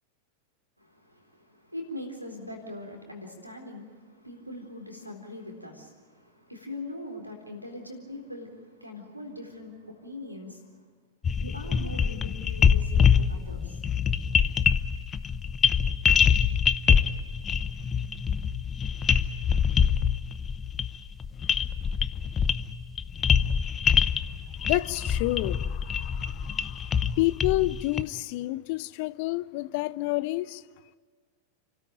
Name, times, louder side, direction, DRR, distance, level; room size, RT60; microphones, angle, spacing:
voice 1, 0.8-10.9 11.4-13.8, left 1 dB, 90° right, 2 dB, 3.9 m, -41 dB
sound 1, 11.2-28.0, left 7 dB, 25° left, 0.8 m, -25 dB
voice 2, 24.6-30.6, left 19 dB, 45° left, 18 dB, 0.6 m, -29 dB
29.5 x 13.5 x 9.2 m, 1.5 s
figure-of-eight pair, 90°, 0 cm